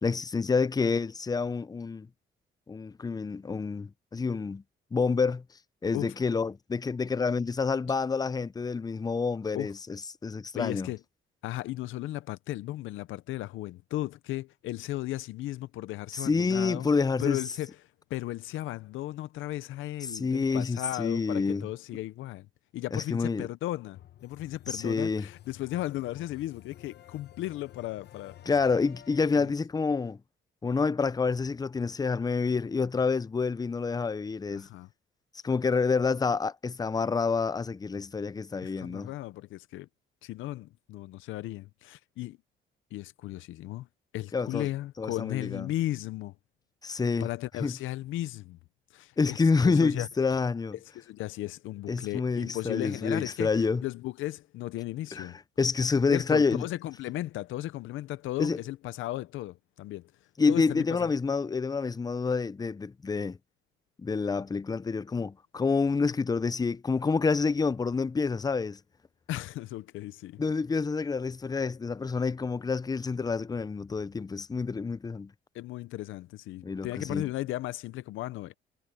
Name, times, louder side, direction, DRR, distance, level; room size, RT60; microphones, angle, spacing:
voice 1, 0.0-2.1 2.7-4.6 4.9-5.4 5.8-10.9 16.1-17.4 20.1-21.7 22.9-23.5 24.7-25.3 28.5-30.2 30.6-34.7 35.4-39.1 44.3-44.7 45.0-45.7 46.8-47.3 47.6-47.7 49.2-50.8 51.9-53.8 55.1-55.3 55.6-56.6 58.4-58.6 60.4-63.4 64.0-68.8 70.4-75.3 76.6-77.3, left 4 dB, 20° left, 0.5 m, -28 dB
voice 2, 10.5-11.0 11.4-16.9 17.2-17.8 18.1-22.5 22.7-28.4 29.4-29.5 34.5-34.9 38.6-39.9 40.2-42.4 42.9-43.9 44.1-46.3 46.9-48.6 48.9-50.1 50.8-53.5 53.8-55.4 56.1-60.1 60.5-61.1 69.3-70.4 75.5-78.6, left 15 dB, 85° left, 0.6 m, -35 dB
sound 1, 23.9-29.5, left 11 dB, 60° left, 1.0 m, -52 dB
cardioid pair, 90°, 20 cm